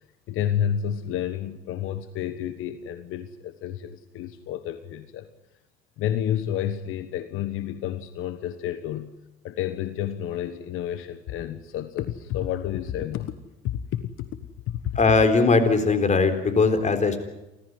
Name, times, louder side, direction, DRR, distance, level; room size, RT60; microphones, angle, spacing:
voice 1, 0.3-5.3 6.0-9.1 9.4-13.3 13.6-14.3 14.7-15.0, left 10 dB, 75° left, 11 dB, 1.3 m, -30 dB
voice 2, 15.0-17.2, left 4 dB, 35° left, 9 dB, 4.1 m, -20 dB
28.5 x 14.5 x 9.6 m, 0.95 s
supercardioid pair, 85°, 21 cm